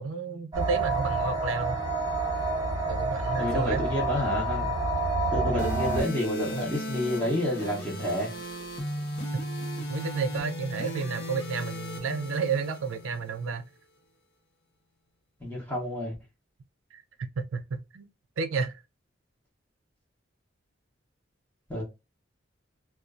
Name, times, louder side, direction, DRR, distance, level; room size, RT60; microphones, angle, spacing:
voice 1, 0.0-1.8 2.9-3.8 9.3-9.4 9.8-13.7 16.9-18.1 18.4-18.8, right 4 dB, 85° right, 0.4 m, -31 dB
sound 1, 0.5-6.0, right 2 dB, 20° right, 0.6 m, -28 dB
voice 2, 3.4-4.7 5.3-8.3 15.4-16.1 21.7-21.8, left 1 dB, 10° left, 0.8 m, -29 dB
sound 2, 5.6-13.6, equal, 60° left, 0.9 m, -36 dB
2.5 x 2.3 x 2.3 m
head